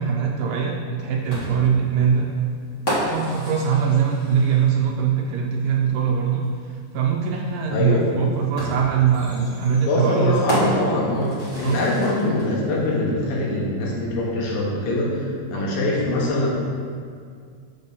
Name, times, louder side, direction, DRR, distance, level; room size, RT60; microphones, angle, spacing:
voice 1, 0.0-2.3 3.1-10.4 11.6-11.9 15.5-15.7, right 7 dB, 80° right, 0 dB, 2.1 m, -22 dB
sound 1, 1.3-4.9 6.4-6.5 8.6-12.5, equal, 40° left, 1.2 m, -31 dB
voice 2, 7.7-8.0 9.9-16.5, left 2 dB, 75° left, -4 dB, 2.9 m, -23 dB
7.3 x 7.2 x 2.7 m, 2.2 s
omnidirectional pair, 4.3 m